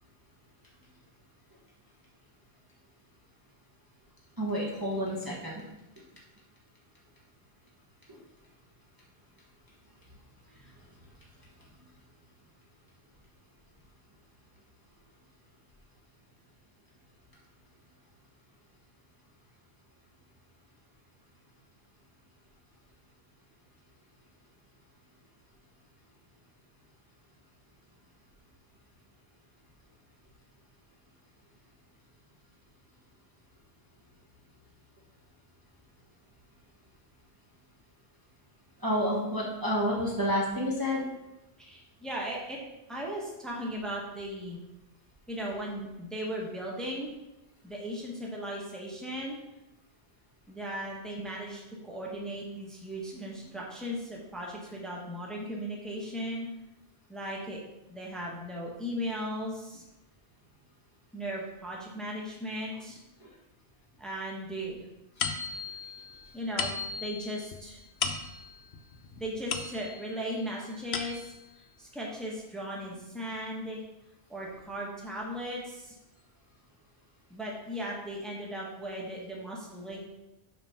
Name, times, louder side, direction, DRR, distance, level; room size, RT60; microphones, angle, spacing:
voice 1, 4.4-5.7 8.1-8.2 11.6-11.7 38.8-41.1 63.2-63.3 65.3-65.4, equal, 20° right, -4 dB, 1.2 m, -30 dB
voice 2, 41.6-42.6 42.9-44.6 45.3-47.1 47.6-49.4 50.5-56.5 57.1-57.6 57.9-59.8 61.1-63.0 64.0-64.9 66.3-67.8 69.2-71.3 71.8-73.8 74.3-76.0 77.3-80.0, equal, ahead, -3 dB, 1.2 m, -37 dB
sound 1, 65.2-70.2 70.6-71.5, left 5 dB, 70° left, 0.9 m, -36 dB
5.9 x 4.6 x 5.7 m, 0.94 s
omnidirectional pair, 1.1 m